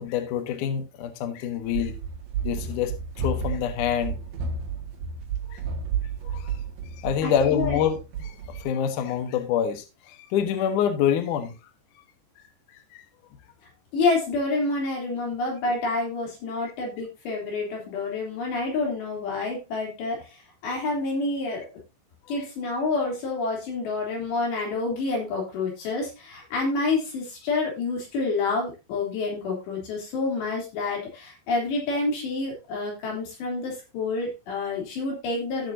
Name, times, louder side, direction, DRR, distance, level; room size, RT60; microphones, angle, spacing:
voice 1, 0.0-1.9 2.4-2.9 3.2-4.2 5.5-5.6 6.2-6.6 7.0-11.5 12.9-13.0 22.3-22.4, left 9 dB, 80° left, 1.8 m, -26 dB
Run, 1.6-8.7, right 5 dB, 55° right, 3.1 m, -32 dB
voice 2, 7.2-7.8 13.9-21.7 22.3-35.7, left 3 dB, 65° left, 5.4 m, -28 dB
15.0 x 6.5 x 2.7 m
omnidirectional pair, 5.4 m